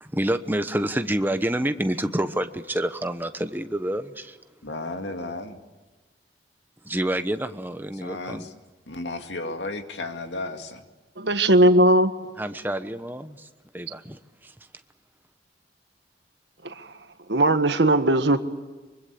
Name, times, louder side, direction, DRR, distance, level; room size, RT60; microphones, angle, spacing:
voice 1, 0.0-4.4 6.8-8.5 12.4-13.5 13.7-14.5, right 1 dB, 10° right, 9 dB, 1.0 m, -28 dB
voice 2, 4.6-5.6 8.0-8.5 8.9-10.8, left 2 dB, 90° left, 6 dB, 2.3 m, -33 dB
voice 3, 11.2-12.1 16.6-16.7 17.3-18.4, right 1 dB, 80° right, 9 dB, 1.7 m, -18 dB
24.5 x 24.0 x 8.5 m, 1.2 s
head